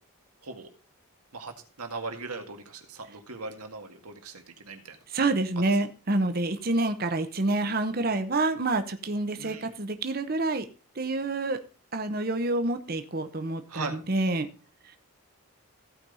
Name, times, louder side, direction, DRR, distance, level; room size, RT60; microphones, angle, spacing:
voice 1, 1.3-5.0 9.4-9.7 13.7-14.0, right 3 dB, 85° right, 4 dB, 2.0 m, -39 dB
voice 2, 5.1-10.7 10.9-11.6 11.9-14.5 14.8-15.0, right 2 dB, 40° right, 8 dB, 0.8 m, -28 dB
15.5 x 5.3 x 4.0 m, 0.34 s
head